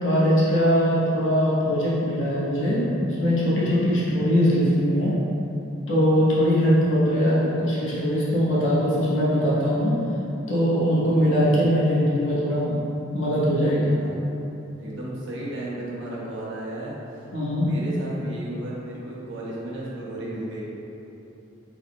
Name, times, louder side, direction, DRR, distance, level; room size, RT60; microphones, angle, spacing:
voice 1, 0.0-5.1 5.9-9.9 10.5-12.8 13.1-14.0 17.3-17.7, equal, 70° left, -8 dB, 1.0 m, -21 dB
voice 2, 13.7-14.1 14.8-17.3 17.6-20.6, right 1 dB, 65° right, -6 dB, 0.9 m, -35 dB
4.1 x 3.7 x 2.3 m, 2.9 s
head